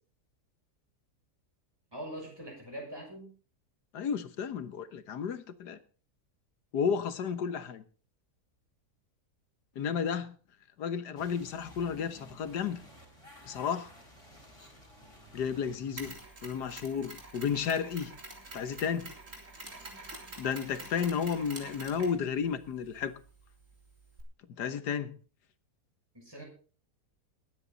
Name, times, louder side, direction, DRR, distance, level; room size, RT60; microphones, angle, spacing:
voice 1, 1.9-3.3 26.1-26.4, right 1 dB, 15° right, 6.4 m, -42 dB
voice 2, 3.9-5.8 6.7-7.8 9.8-10.3 10.8-12.8 13.4-13.9 15.3-16.1 16.4-18.1 18.5-19.1 20.4-23.1 24.6-25.1, left 7 dB, 80° left, 1.7 m, -32 dB
sound 1, 11.2-16.2, left 1 dB, 20° left, 4.5 m, -53 dB
Mechanisms, 16.0-24.2, right 2 dB, 50° right, 3.9 m, -47 dB
21.0 x 9.5 x 4.0 m
omnidirectional pair, 1.7 m